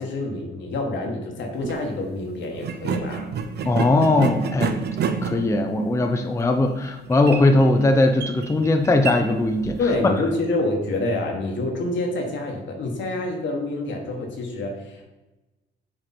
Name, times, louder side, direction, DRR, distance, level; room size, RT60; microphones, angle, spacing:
voice 1, 0.0-3.3 9.8-15.1, left 2 dB, 70° left, 2 dB, 1.3 m, -27 dB
sound 1, 1.5-1.8 2.6-10.1, right 6 dB, 55° right, 0.6 m, -30 dB
voice 2, 3.6-4.8 5.2-9.8, left 2 dB, 15° left, 5 dB, 0.5 m, -19 dB
7.8 x 3.0 x 4.1 m, 1.1 s
cardioid pair, 90°, 20 cm